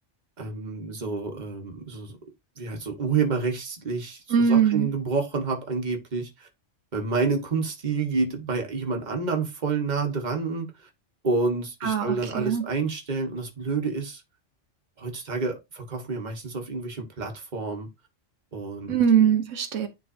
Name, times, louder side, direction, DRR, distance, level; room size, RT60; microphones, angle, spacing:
voice 1, 0.4-2.2 2.6-6.5 6.9-10.9 11.2-14.2 15.0-17.9 18.5-19.0, right 4 dB, 40° right, 1.4 m, -29 dB
voice 2, 4.3-4.9 11.8-12.6 18.9-19.9, right 7 dB, 90° right, 1.4 m, -21 dB
10.0 x 3.8 x 2.6 m
omnidirectional pair, 1.3 m